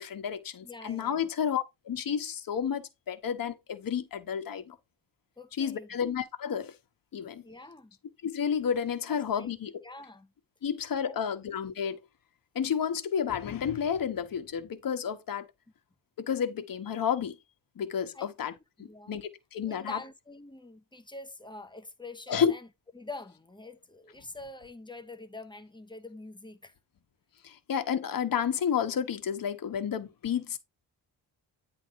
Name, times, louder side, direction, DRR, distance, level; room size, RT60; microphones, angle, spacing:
voice 1, 0.0-4.7 5.6-6.7 7.1-7.4 8.2-9.7 10.6-12.0 12.5-15.5 16.2-17.4 17.8-18.5 18.8-20.0 22.3-22.5 27.4-30.6, left 8 dB, 50° left, 1.4 m, -31 dB
voice 2, 0.6-1.3 5.4-6.0 7.4-8.0 9.1-9.5 9.8-10.3 11.0-11.2 18.1-18.3 18.8-19.2 19.6-22.7 22.9-26.7, left 2 dB, 10° left, 1.0 m, -45 dB
10.0 x 3.8 x 4.7 m
wide cardioid pair, 180°, 43 cm